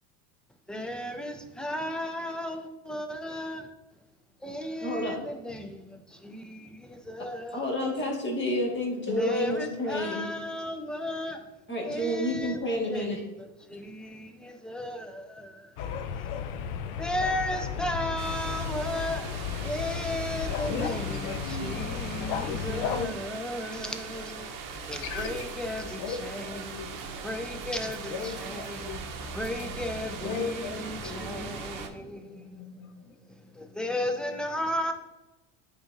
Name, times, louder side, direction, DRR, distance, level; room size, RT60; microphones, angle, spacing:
voice 1, 0.7-3.7 4.4-8.1 9.2-11.4 11.8-13.2 13.7-15.7 17.0-19.3 19.6-24.5 24.8-26.8 27.2-29.0 29.3-32.6 33.4-34.9, left 1 dB, ahead, 5 dB, 0.5 m, -35 dB
voice 2, 4.8-5.2 7.5-10.3 11.7-13.2, left 1 dB, 25° left, 0 dB, 1.7 m, -29 dB
sound 1, 15.8-23.1, left 7 dB, 75° left, 0.7 m, -34 dB
sound 2, 18.2-31.9, right 5 dB, 45° right, 0.9 m, -40 dB
voice 3, 20.6-23.2 25.0-25.5 25.8-27.4 28.1-29.7 30.2-31.9 32.2-33.2, left 5 dB, 50° left, 7 dB, 0.9 m, -39 dB
9.3 x 3.9 x 2.6 m, 1.0 s
supercardioid pair, 105°, 47 cm